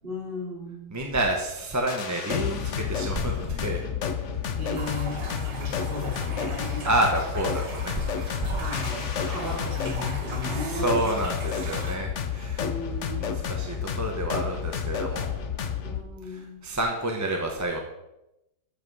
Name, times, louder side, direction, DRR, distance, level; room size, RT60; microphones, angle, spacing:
voice 1, 0.0-0.9 4.6-6.9 8.6-11.2 12.6-13.3 15.8-16.6, left 2 dB, 35° right, -4 dB, 3.4 m, -35 dB
voice 2, 0.9-3.8 6.9-8.6 9.2-9.7 10.5-12.7 13.2-15.3 16.6-17.8, right 1 dB, 15° right, 1 dB, 0.9 m, -29 dB
sound 1, 1.9-16.0, left 7 dB, 55° left, 1.0 m, -30 dB
sound 2, 4.7-11.9, right 3 dB, 75° right, 2.9 m, -39 dB
13.5 x 5.4 x 5.5 m, 0.90 s
omnidirectional pair, 1.8 m